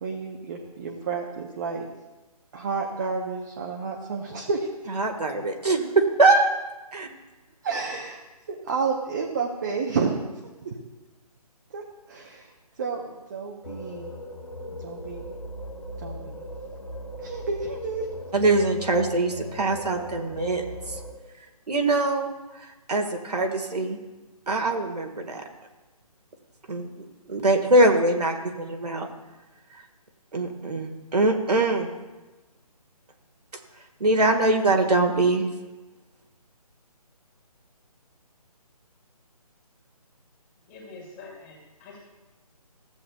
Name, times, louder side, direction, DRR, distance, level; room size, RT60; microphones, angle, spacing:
voice 1, 0.0-1.9 2.5-4.7 7.6-8.2 8.5-10.2 10.6-10.7 11.7-11.8 12.1-12.5 12.8-14.1 14.8-15.3 16.0-16.4 17.2-18.1 27.5-27.7, right 5 dB, 30° right, 0 dB, 0.8 m, -30 dB
voice 2, 5.0-6.5 6.9-7.1 18.3-20.6 21.7-22.3 22.9-24.0 24.5-25.4 26.7-26.9 27.3-29.1 30.3-31.9 34.0-35.4, right 2 dB, 85° right, 2 dB, 1.6 m, -22 dB
sound 1, 13.6-21.1, equal, 90° left, 2.2 m, -38 dB
voice 3, 40.7-42.0, left 3 dB, 20° left, -3 dB, 2.3 m, -45 dB
15.5 x 8.3 x 2.3 m, 1.1 s
figure-of-eight pair, 160°, 20 cm